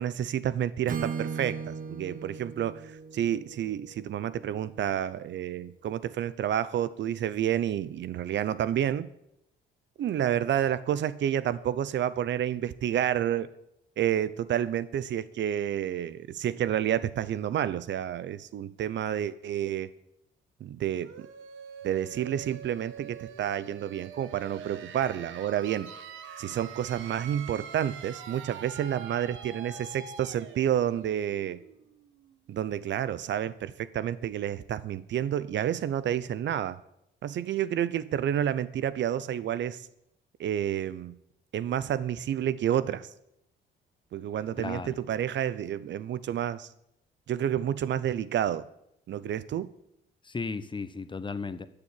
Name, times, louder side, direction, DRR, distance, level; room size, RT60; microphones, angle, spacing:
voice 1, 0.0-2.8 3.1-9.1 10.0-13.5 14.0-19.9 20.6-21.3 21.8-25.9 26.4-31.6 32.5-36.8 37.2-39.8 40.4-41.1 41.5-43.1 44.1-46.7 47.3-48.7 49.1-49.7, right 10 dB, 65° right, 17 dB, 0.7 m, -29 dB
Acoustic guitar / Strum, 0.9-4.8, right 6 dB, 45° right, 1.2 m, -38 dB
sound 1, 21.0-32.6, right 7 dB, 80° right, 1.3 m, -45 dB
voice 2, 44.6-45.0 50.2-51.7, left 4 dB, 25° left, 12 dB, 0.9 m, -35 dB
13.0 x 6.8 x 8.6 m, 0.80 s
cardioid pair, 90°, 20 cm